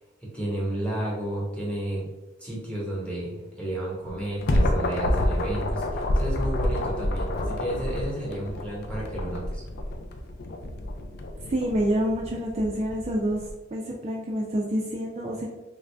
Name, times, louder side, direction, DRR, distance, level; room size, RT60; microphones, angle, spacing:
voice 1, 0.2-2.1 2.4-9.6, right 1 dB, 5° left, -6 dB, 1.1 m, -32 dB
sound 1, 4.0-13.5, left 1 dB, 50° left, 0.4 m, -28 dB
voice 2, 11.5-13.4 13.7-15.5, equal, 30° right, -2 dB, 0.4 m, -27 dB
3.1 x 2.6 x 3.3 m, 1.1 s
head